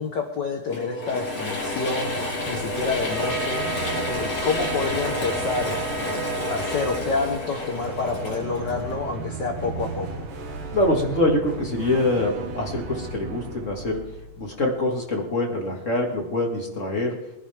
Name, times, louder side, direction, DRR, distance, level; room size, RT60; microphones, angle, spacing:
voice 1, 0.0-2.1 2.5-3.7 4.1-10.1, left 4 dB, 70° left, 3 dB, 1.0 m, -28 dB
Mechanisms / Drill, 0.7-9.3, left 2 dB, 50° left, 5.2 m, -30 dB
sound 1, 1.3-15.3, right 3 dB, 85° right, 3.2 m, -36 dB
Wind instrument woodwind instrument, 3.1-7.1, right 7 dB, 70° right, 2.3 m, -35 dB
voice 2, 10.7-17.2, left 1 dB, 30° left, 0 dB, 1.5 m, -25 dB
21.5 x 11.0 x 3.4 m, 0.90 s
omnidirectional pair, 3.8 m